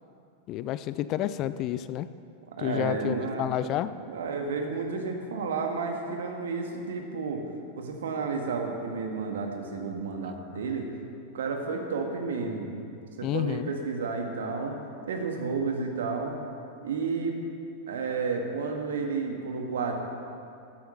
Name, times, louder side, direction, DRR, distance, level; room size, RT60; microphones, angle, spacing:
voice 1, 0.5-2.1 2.6-3.9 13.2-13.7, left 13 dB, 35° left, 14 dB, 0.4 m, -30 dB
voice 2, 2.5-3.7 4.1-7.4 7.8-10.9 11.3-12.7 13.2-14.8 15.1-16.4 16.8-17.4 17.9-19.9, right 4 dB, 65° right, 3 dB, 1.9 m, -31 dB
14.0 x 11.5 x 5.8 m, 2.5 s
figure-of-eight pair, 90°, 0 cm